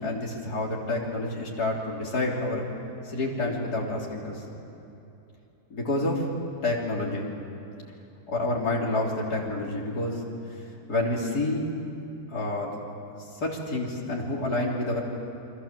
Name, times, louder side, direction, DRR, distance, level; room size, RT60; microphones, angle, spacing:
voice 1, 0.0-2.7 3.0-4.4 5.7-6.2 6.6-7.3 8.3-10.2 10.9-11.7 12.3-12.8 13.3-15.0, left 2 dB, 85° left, -3 dB, 4.0 m, -28 dB
28.5 x 23.5 x 7.6 m, 2.9 s
omnidirectional pair, 1.6 m